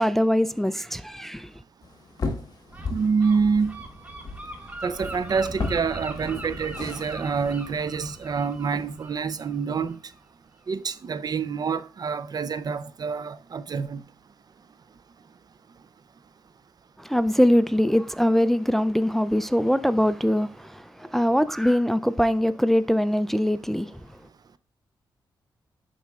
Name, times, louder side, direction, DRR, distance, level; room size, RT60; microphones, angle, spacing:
voice 1, 0.0-1.5 17.0-24.1, equal, 5° left, 0.4 m, -22 dB
sound 1, 1.8-9.0, left 3 dB, 50° left, 1.3 m, -37 dB
Gull seagull, 2.7-10.2, right 1 dB, 15° right, 1.6 m, -40 dB
voice 2, 2.9-3.7 4.8-10.0 10.7-14.0, right 5 dB, 50° right, 0.5 m, -27 dB
11.0 x 4.2 x 2.4 m
cardioid pair, 70°, 9 cm